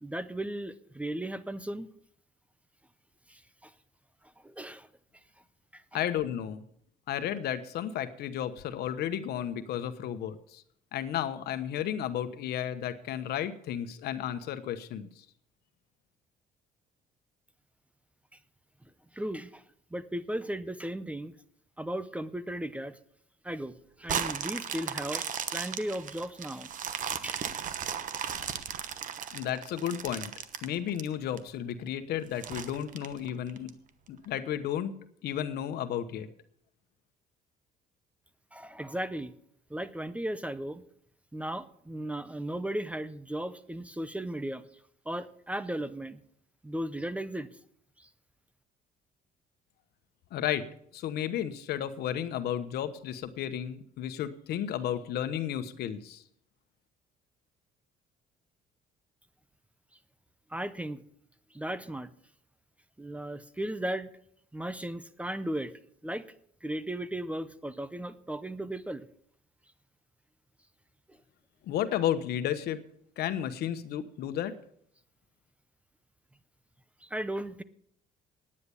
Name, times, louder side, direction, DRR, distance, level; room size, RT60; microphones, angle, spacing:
voice 1, 0.0-1.9 3.3-3.7 4.4-4.9 5.7-5.8 18.3-18.4 19.1-19.6 19.9-21.3 21.8-23.0 23.4-26.7 27.2-27.4 38.5-39.3 39.7-40.8 41.3-44.7 45.1-46.2 46.6-47.5 48.0-48.1 60.5-61.0 61.5-62.1 63.0-64.1 64.5-65.7 66.0-66.3 66.6-69.1 71.1-71.2 77.0-77.6, right 1 dB, 10° right, 14 dB, 0.7 m, -36 dB
voice 2, 5.9-6.6 7.1-10.6 10.9-15.1 29.3-30.3 30.6-33.7 34.1-34.9 35.2-36.3 50.3-50.7 50.9-56.2 71.6-72.8 73.2-74.6, left 10 dB, 70° left, 11 dB, 1.1 m, -33 dB
sound 1, 24.1-31.4 31.9-32.0 32.4-33.7 34.2-34.3, right 8 dB, 50° right, 1.1 m, -36 dB
9.8 x 9.8 x 7.0 m, 0.66 s
cardioid pair, 110°, 17 cm